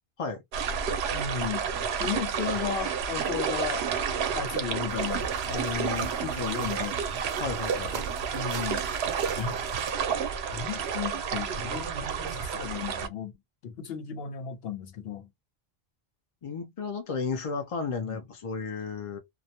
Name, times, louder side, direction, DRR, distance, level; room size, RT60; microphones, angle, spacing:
sound 1, 0.5-13.1, right 7 dB, 85° right, 0.8 m, -30 dB
voice 1, 1.1-1.7 2.0-3.9 4.3-7.0 8.3-8.9 9.3-9.6 10.5-13.3 13.6-15.3 18.0-18.2, left 8 dB, 75° left, 0.9 m, -34 dB
sound 2, 4.9-9.9, right 5 dB, 55° right, 0.6 m, -43 dB
voice 2, 7.4-8.0 16.4-19.2, left 5 dB, 45° left, 0.5 m, -33 dB
2.3 x 2.1 x 2.7 m
omnidirectional pair, 1.0 m